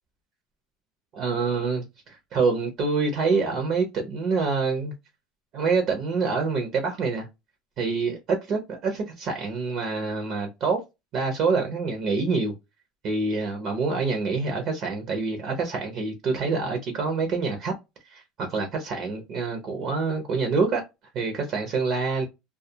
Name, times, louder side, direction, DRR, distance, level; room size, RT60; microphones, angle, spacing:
voice 1, 1.1-4.9 5.5-7.3 7.8-10.8 11.1-12.5 13.0-17.7 18.1-20.8 21.1-22.3, right 4 dB, 45° right, 0.7 m, -26 dB
2.3 x 2.2 x 2.7 m
cardioid pair, 145°, 0 cm